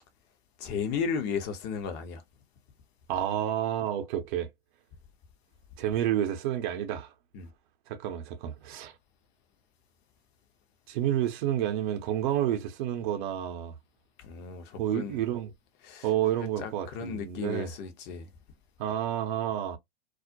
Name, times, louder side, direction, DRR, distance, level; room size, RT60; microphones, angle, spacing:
voice 1, 0.6-2.2 7.3-7.5 14.2-15.2 15.8-16.1 16.4-18.3, left 6 dB, 35° left, 0.7 m, -34 dB
voice 2, 3.1-4.5 5.8-7.1 7.9-8.9 10.9-13.7 14.8-15.5 16.0-17.7 18.8-19.8, right 11 dB, 50° right, 0.6 m, -30 dB
2.3 x 2.1 x 2.6 m
hypercardioid pair, 110°, 31 cm